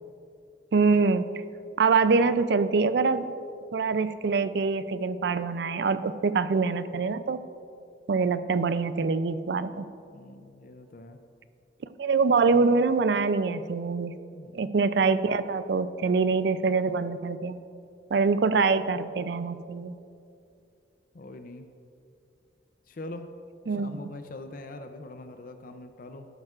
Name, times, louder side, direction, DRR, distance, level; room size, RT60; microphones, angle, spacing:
voice 1, 0.7-1.3 1.8-3.3 3.7-7.4 8.1-9.8 12.0-14.1 14.5-17.6 18.1-19.9 23.7-24.0, right 4 dB, 65° right, 13 dB, 0.4 m, -24 dB
voice 2, 10.1-11.2 14.3-14.7 21.1-21.7 22.9-23.3 23.8-26.3, left 2 dB, 50° left, 7 dB, 0.5 m, -43 dB
12.0 x 11.0 x 2.4 m, 2.5 s
head